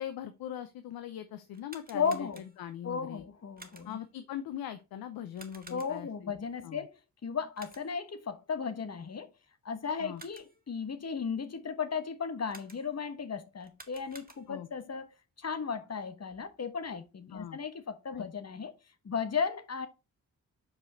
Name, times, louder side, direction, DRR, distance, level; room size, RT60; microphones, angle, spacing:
voice 1, 0.0-3.2 3.8-6.3 6.6-6.9 10.0-10.2 14.5-14.7 17.3-17.6 18.1-18.3, left 10 dB, 70° left, 0.7 m, -41 dB
sound 1, 1.5-2.8 3.6-4.1 5.3-6.2 7.5-8.1 9.9-10.7 12.5-13.1 13.6-14.7, right 3 dB, 25° right, 1.7 m, -53 dB
voice 2, 1.9-2.4 2.8-4.0 5.7-6.9 7.2-9.3 9.6-15.1 15.4-18.7 19.0-19.9, left 6 dB, 45° left, 1.3 m, -35 dB
6.1 x 5.0 x 4.3 m
hypercardioid pair, 40°, 37 cm